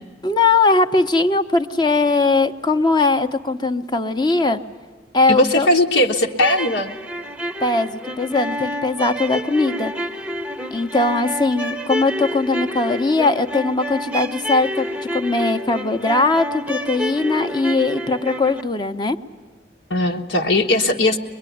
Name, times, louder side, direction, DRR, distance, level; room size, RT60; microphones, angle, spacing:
voice 1, 0.2-4.6 5.1-5.7 7.6-9.9 10.7-19.2, left 3 dB, 25° left, 8 dB, 0.8 m, -20 dB
voice 2, 5.3-6.9 19.9-21.2, left 1 dB, 90° left, 1 dB, 1.5 m, -18 dB
sound 1, 6.3-18.6, equal, 5° right, 0.7 m, -28 dB
23.0 x 22.0 x 9.3 m, 1.4 s
head